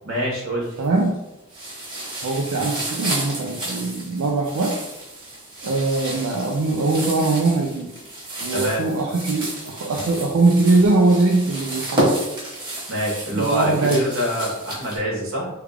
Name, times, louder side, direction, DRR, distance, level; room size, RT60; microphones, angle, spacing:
voice 1, 0.0-0.8 8.5-8.8 12.9-15.5, equal, 65° right, -3 dB, 1.2 m, -25 dB
sound 1, 0.6-1.1 1.5-15.0, right 1 dB, 20° right, 1.3 m, -31 dB
voice 2, 0.8-1.2 2.2-4.8 5.6-7.9 8.4-12.2 13.3-14.0, right 3 dB, 85° right, -1 dB, 0.5 m, -21 dB
3.4 x 2.3 x 3.3 m, 0.97 s
head